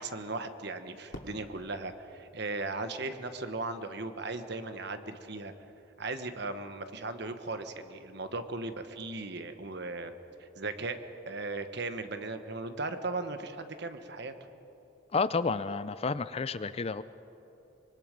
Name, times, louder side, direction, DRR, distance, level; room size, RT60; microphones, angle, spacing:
voice 1, 0.0-5.5 6.0-10.1 10.4-11.0 11.3-14.3, right 3 dB, 55° right, 9 dB, 1.3 m, -37 dB
Fireworks, 1.1-3.3, left 1 dB, 65° left, 2.4 m, -50 dB
voice 2, 15.1-17.0, left 4 dB, 30° left, 14 dB, 0.4 m, -30 dB
25.0 x 23.0 x 5.3 m, 3.0 s
head